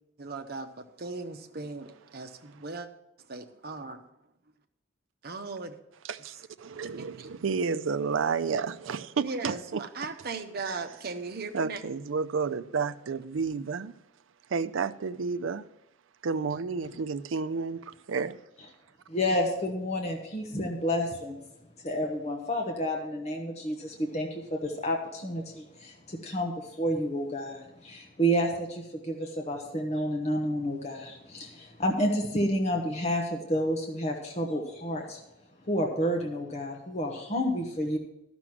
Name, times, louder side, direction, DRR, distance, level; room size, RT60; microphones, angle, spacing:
voice 1, 0.2-2.9 3.3-4.0 5.2-5.7 7.2-7.4 8.6-8.7 9.2-11.8, right 3 dB, 50° right, 0.9 m, -38 dB
voice 2, 6.0-9.8 10.6-10.8 11.5-14.0 14.5-15.7 16.2-18.4, right 5 dB, 90° right, 0.5 m, -31 dB
voice 3, 19.1-21.4 21.8-35.2 35.7-38.0, equal, 35° left, 1.1 m, -30 dB
12.5 x 6.1 x 6.1 m
head